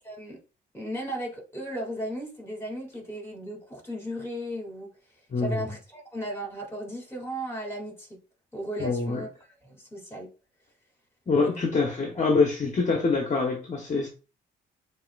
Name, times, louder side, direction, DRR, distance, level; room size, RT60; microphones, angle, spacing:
voice 1, 0.0-0.4 0.7-4.9 5.4-8.1 8.5-10.3 11.3-11.7, right 1 dB, 10° left, 2.4 m, -36 dB
voice 2, 5.3-5.6 8.8-9.2 11.3-14.1, left 4 dB, 40° left, 1.1 m, -25 dB
7.4 x 2.9 x 2.4 m
cardioid pair, 90°, 20 cm